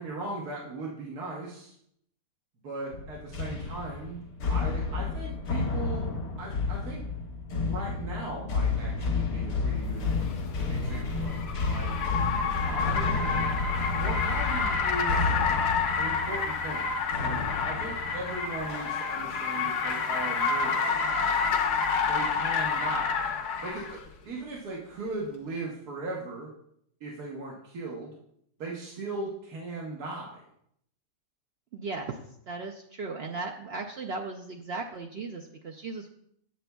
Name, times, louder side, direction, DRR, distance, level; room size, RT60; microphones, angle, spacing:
voice 1, 0.0-1.7 2.6-6.1 6.4-7.0 7.6-10.1 10.7-12.0 12.6-13.3 13.9-15.3 16.0-16.9 17.2-21.0 22.0-23.3 23.6-24.0 24.2-26.5 27.0-28.1 28.6-30.4, right 2 dB, 90° right, -3 dB, 1.6 m, -38 dB
sound 1, 2.9-19.5 19.9-20.2 20.8-21.3, left 3 dB, 70° left, 1.5 m, -31 dB
Car, 10.0-24.0, left 5 dB, 90° left, 1.4 m, -29 dB
voice 2, 31.7-32.1 32.5-36.1, right 3 dB, 70° right, 1 dB, 0.6 m, -36 dB
7.9 x 7.6 x 2.2 m, 0.70 s
omnidirectional pair, 1.6 m